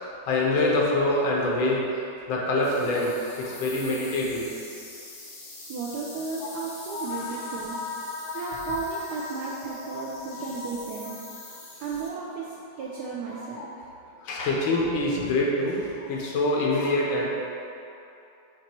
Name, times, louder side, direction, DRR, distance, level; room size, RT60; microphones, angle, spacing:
voice 1, 0.3-2.0 2.3-4.5 6.4-6.6 6.9-8.8 9.2-10.6 13.3-13.7 14.2-17.2, left 2 dB, 75° left, -3 dB, 1.7 m, -27 dB
sound 1, 2.6-12.1, left 2 dB, 40° left, 1.0 m, -44 dB
voice 2, 5.7-7.8 8.3-11.2 11.8-13.8, right 4 dB, 75° right, -4 dB, 0.9 m, -34 dB
7.2 x 3.0 x 4.4 m, 2.8 s
omnidirectional pair, 2.3 m